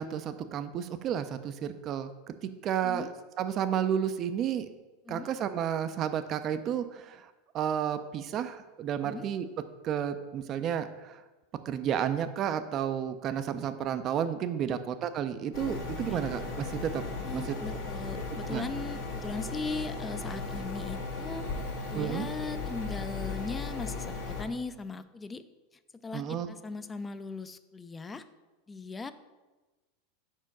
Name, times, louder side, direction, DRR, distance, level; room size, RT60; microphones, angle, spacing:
voice 1, 0.0-2.1 2.4-3.1 3.4-4.7 5.1-7.3 7.5-9.5 9.8-11.2 11.7-16.4 16.7-17.0 17.3-17.6 18.5-18.7 21.9-22.3 26.1-26.5, right 9 dB, 40° right, 10 dB, 0.4 m, -31 dB
sound 1, 15.5-24.4, left 3 dB, 65° left, 1.3 m, -36 dB
voice 2, 17.2-21.5 21.9-25.4 26.0-28.3 28.7-29.1, left 4 dB, 20° left, 12 dB, 0.4 m, -39 dB
5.0 x 4.5 x 6.0 m, 1.2 s
hypercardioid pair, 110°, 0 cm